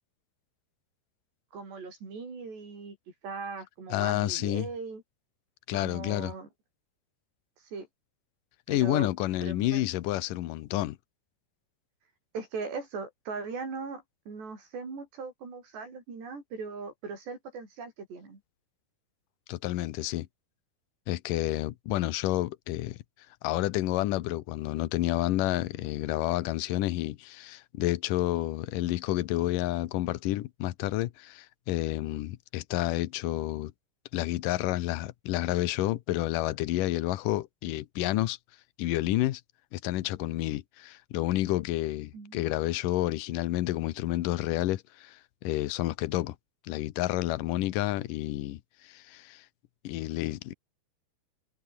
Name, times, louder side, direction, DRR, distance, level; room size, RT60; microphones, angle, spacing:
voice 1, 1.5-3.0 3.2-5.0 5.8-6.5 7.6-7.9 8.7-9.1 9.4-9.9 12.3-18.4 42.1-42.4, right 4 dB, 85° right, 9.8 m, -39 dB
voice 2, 3.9-4.7 5.7-6.3 8.7-11.0 19.5-20.3 21.1-23.0 23.4-33.7 34.1-38.4 38.8-39.4 39.7-46.4 46.6-49.4 49.8-50.5, left 16 dB, 70° left, 2.2 m, -30 dB
omnidirectional pair, 4.8 m